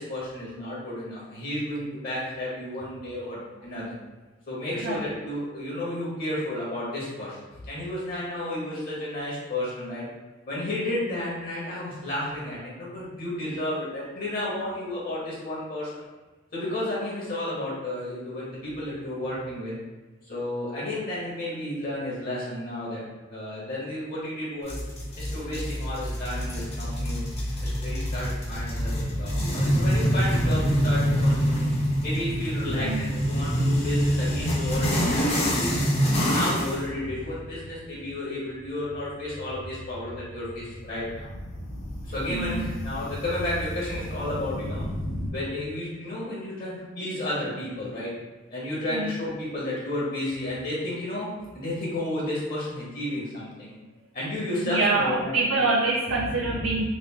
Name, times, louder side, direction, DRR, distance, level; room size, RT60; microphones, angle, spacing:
voice 1, 0.0-3.9 4.5-10.1 10.5-16.0 16.5-19.8 20.3-23.0 23.3-24.8 25.2-27.2 27.6-31.7 32.0-35.8 36.3-41.3 42.0-44.8 45.3-48.1 48.5-53.7 54.1-55.4 56.3-56.6, left 1 dB, 50° left, -7 dB, 1.0 m, -32 dB
sound 1, 24.7-36.8, equal, 35° left, 0.7 m, -25 dB
sound 2, 28.5-45.3, left 1 dB, 80° left, 0.7 m, -36 dB
voice 2, 32.7-33.1 42.3-42.7 48.9-49.2 54.7-56.9, right 3 dB, 85° right, -2 dB, 0.4 m, -26 dB
3.1 x 2.4 x 3.4 m, 1.2 s
head